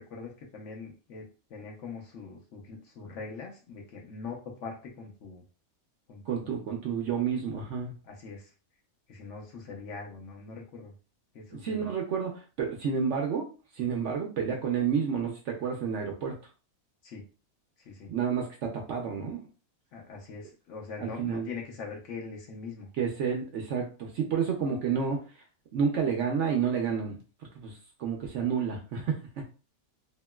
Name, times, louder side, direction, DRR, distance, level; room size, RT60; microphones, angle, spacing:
voice 1, 0.0-5.4 6.1-6.6 8.0-8.5 9.1-10.9 11.3-11.9 17.0-17.2 17.8-18.1 19.9-22.9, left 4 dB, 65° left, 0 dB, 0.9 m, -42 dB
voice 2, 6.3-7.9 11.6-13.5 13.7-16.3 18.1-19.4 21.0-21.5 23.0-25.2 25.7-29.4, right 6 dB, 65° right, 2 dB, 0.8 m, -30 dB
3.0 x 2.8 x 2.2 m, 0.35 s
omnidirectional pair, 1.5 m